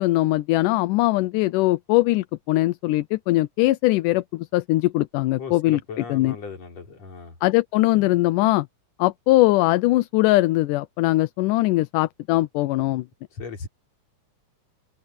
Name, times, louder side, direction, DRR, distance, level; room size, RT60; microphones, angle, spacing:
voice 1, 0.0-5.8 6.1-6.4 7.4-8.7 9.0-13.1, left 18 dB, 80° left, 2.1 m, -21 dB
voice 2, 5.4-7.4 13.3-13.7, left 5 dB, 50° left, 5.1 m, -37 dB
omnidirectional pair, 3.8 m